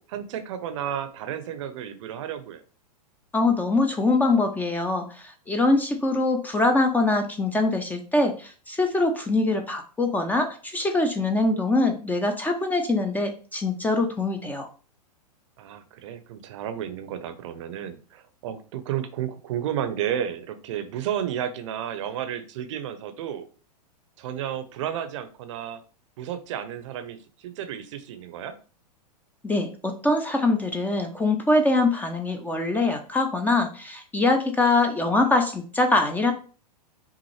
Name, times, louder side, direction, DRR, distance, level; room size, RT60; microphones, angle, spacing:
voice 1, 0.0-2.6 15.6-23.5 24.2-25.8 26.2-27.2 27.4-28.5, right 10 dB, 50° right, 10 dB, 0.7 m, -32 dB
voice 2, 3.3-14.7 29.4-36.3, left 2 dB, 10° left, 5 dB, 0.5 m, -23 dB
5.6 x 2.5 x 3.2 m, 0.38 s
figure-of-eight pair, 105°, 20 cm